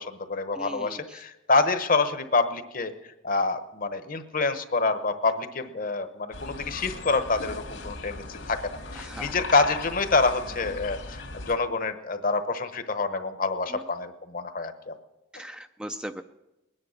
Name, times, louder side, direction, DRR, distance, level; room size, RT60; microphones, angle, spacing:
voice 1, 0.0-2.9 3.2-8.6 8.9-15.0, left 3 dB, 45° left, 10 dB, 1.0 m, -27 dB
voice 2, 0.6-0.9 9.0-9.3 15.3-16.2, equal, 5° right, 7 dB, 0.5 m, -38 dB
sound 1, 6.3-11.6, left 3 dB, 75° left, 2.2 m, -38 dB
21.0 x 9.9 x 6.5 m, 0.96 s
head